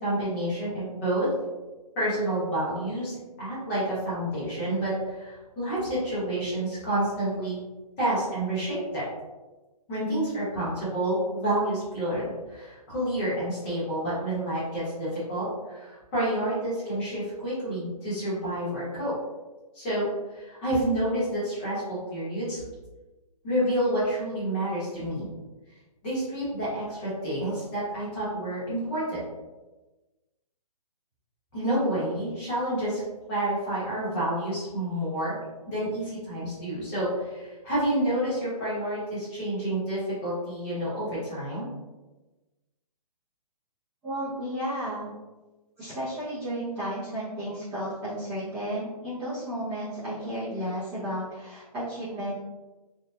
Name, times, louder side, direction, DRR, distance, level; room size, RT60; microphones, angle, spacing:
voice 1, 0.0-1.3 2.0-7.6 8.0-9.0 9.9-19.1 19.7-20.1 20.3-22.6 23.4-25.3 26.0-29.2 31.5-33.0 33.3-35.3 35.7-41.7, right 1 dB, 20° left, -9 dB, 1.0 m, -29 dB
voice 2, 44.0-45.1 45.8-52.3, equal, 10° right, -17 dB, 0.5 m, -33 dB
2.8 x 2.1 x 2.3 m, 1.1 s
hypercardioid pair, 165°, 20 cm